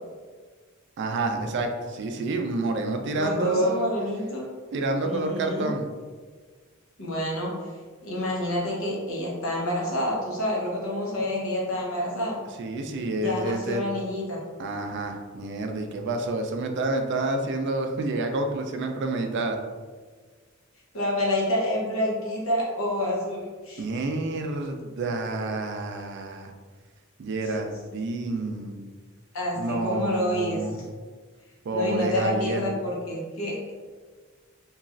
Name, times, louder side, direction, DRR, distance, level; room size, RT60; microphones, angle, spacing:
voice 1, 1.0-3.9 4.7-5.9 12.6-13.8 14.6-19.6 23.8-26.5 27.2-28.8 29.6-30.8 31.6-32.6, right 2 dB, 55° right, 4 dB, 0.3 m, -28 dB
voice 2, 3.1-4.4 5.0-5.7 7.0-7.7 8.0-12.4 13.1-14.4 20.9-23.8 27.4-27.6 29.3-30.8 31.7-33.6, left 1 dB, 70° left, -3 dB, 0.8 m, -28 dB
3.0 x 2.3 x 2.5 m, 1.5 s
head